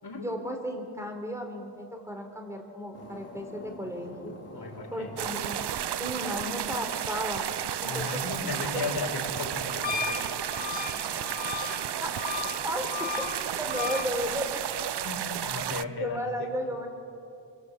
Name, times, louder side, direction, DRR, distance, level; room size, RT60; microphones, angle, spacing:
voice 1, 0.2-4.3 4.9-5.6 6.0-7.5 7.8-8.9 12.0-13.1 13.6-14.6 16.0-16.9, equal, 5° right, 4 dB, 3.8 m, -35 dB
sound 1, 2.9-14.3, left 2 dB, 35° left, 4.4 m, -46 dB
voice 2, 4.5-5.1 7.8-10.3 15.0-16.2, left 3 dB, 55° left, 1 dB, 5.3 m, -35 dB
sound 2, 5.2-15.8, right 11 dB, 65° right, 0.6 m, -33 dB
Wind instrument woodwind instrument, 9.8-14.1, left 8 dB, 80° left, 1.7 m, -35 dB
29.0 x 23.5 x 8.4 m, 2.7 s
wide cardioid pair, 140°, 45 cm